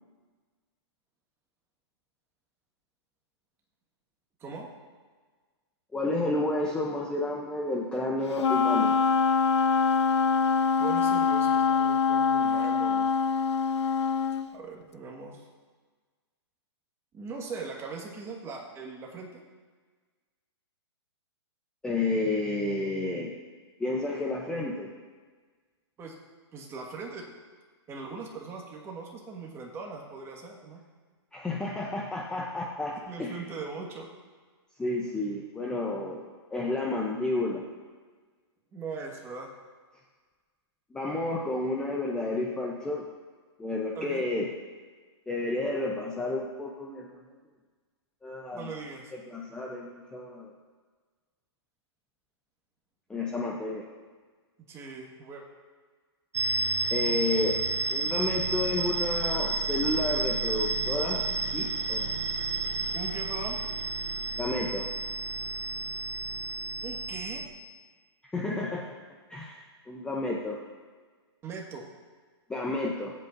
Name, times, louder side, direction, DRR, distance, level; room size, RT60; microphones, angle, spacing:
voice 1, 5.9-8.9 21.8-23.3 23.8-24.9 31.3-33.4 34.8-36.2 36.5-37.6 40.9-43.0 43.6-44.5 45.3-47.2 48.2-48.7 49.3-50.5 53.1-53.9 56.9-57.6 57.9-62.2 64.4-64.9 68.3-68.8 69.3-70.6 72.5-73.1, left 2 dB, 5° left, -2 dB, 0.7 m, -31 dB
Wind instrument woodwind instrument, 8.4-14.5, left 5 dB, 80° left, 0.5 m, -24 dB
voice 2, 10.8-13.1 14.5-15.5 17.1-19.4 26.0-26.1 26.5-27.2 27.9-30.8 33.1-34.1 38.7-39.5 43.9-44.2 48.5-49.1 54.7-55.4 62.9-63.6 66.8-67.4 71.4-71.8, right 4 dB, 20° right, 0 dB, 1.7 m, -40 dB
sound 1, 56.3-67.5, right 3 dB, 85° right, 1.2 m, -31 dB
21.0 x 8.3 x 2.7 m, 1.5 s
hypercardioid pair, 145°, 15 cm